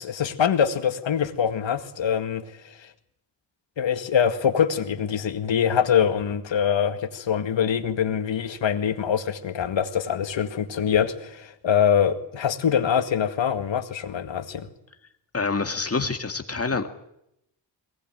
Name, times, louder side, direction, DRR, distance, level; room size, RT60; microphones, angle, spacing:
voice 1, 0.0-2.4 3.8-14.7, left 8 dB, 85° left, 8 dB, 2.1 m, -24 dB
voice 2, 15.3-16.9, left 4 dB, 30° left, 6 dB, 2.0 m, -26 dB
22.5 x 18.5 x 9.1 m, 0.80 s
wide cardioid pair, 105°, 44 cm